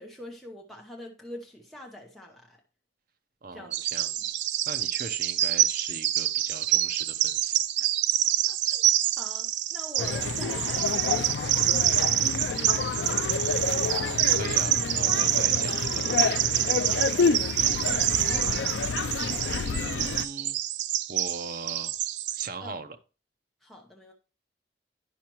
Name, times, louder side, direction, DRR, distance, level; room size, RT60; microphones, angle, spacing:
voice 1, 0.0-2.6 3.5-3.8 4.2-4.3 7.8-7.9 8.5-8.9 9.2-11.8 12.4-13.4 16.8-17.6 17.8-18.8 22.6-22.8 23.6-24.1, left 1 dB, ahead, 0.9 m, -45 dB
voice 2, 3.4-4.3 4.7-7.6 14.0-16.2 19.5-20.6 21.1-21.9 22.3-23.0, right 3 dB, 55° right, 0.8 m, -40 dB
Bird vocalization bird call bird song, 3.7-22.5, right 13 dB, 80° right, 0.4 m, -27 dB
sound 1, 10.0-20.2, left 5 dB, 85° left, 0.4 m, -29 dB
10.0 x 5.8 x 3.0 m
head